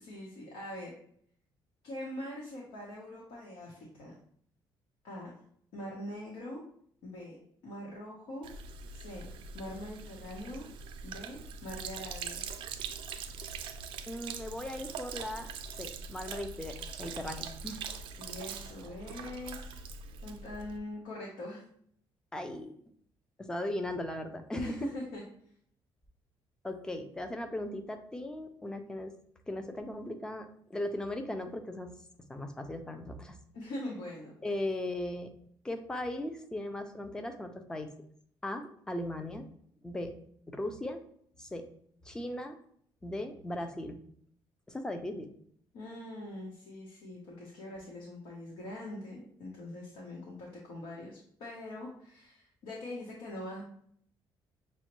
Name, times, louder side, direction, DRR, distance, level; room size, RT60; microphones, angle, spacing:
voice 1, 0.1-0.9 1.8-4.2 5.0-5.3 5.7-6.6 7.0-7.4 7.6-8.5 8.9-9.3 9.5-10.7 11.0-12.4 18.2-19.8 20.2-21.6 24.5-25.2 33.5-34.3 45.7-53.6, left 1 dB, 85° left, -4 dB, 1.0 m, -42 dB
Sink (filling or washing), 8.4-20.8, right 6 dB, 75° right, 0.4 m, -43 dB
voice 2, 14.1-15.5 15.8-17.8 22.3-22.8 23.4-24.9 26.6-29.1 29.5-31.9 32.3-33.4 34.4-35.3 35.6-37.9 38.4-39.5 39.8-40.1 40.5-41.0 41.4-41.7 42.0-42.6 43.0-44.0 44.7-45.3, left 1 dB, 10° left, 6 dB, 0.4 m, -38 dB
6.2 x 2.1 x 3.0 m, 0.64 s
cardioid pair, 160°, 9 cm